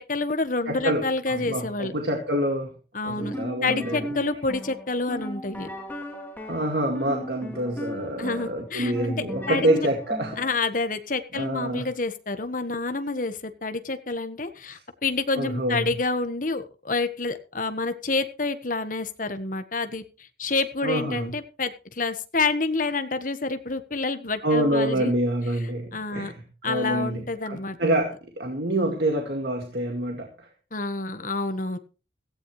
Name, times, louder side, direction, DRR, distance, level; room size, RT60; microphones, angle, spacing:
voice 1, 0.0-1.9 2.9-5.7 8.2-9.1 9.5-9.7 10.4-25.1 25.9-26.3 26.6-27.8 30.7-31.8, left 3 dB, 45° left, 9 dB, 1.4 m, -28 dB
voice 2, 0.7-2.7 3.0-4.1 6.5-10.4 11.3-11.9 14.7-14.8 15.4-15.9 20.8-21.3 24.4-30.5, right 1 dB, 60° right, 2 dB, 2.1 m, -27 dB
sound 1, 3.2-10.6, equal, 10° left, 2.9 m, -37 dB
16.5 x 15.5 x 3.2 m, 0.35 s
head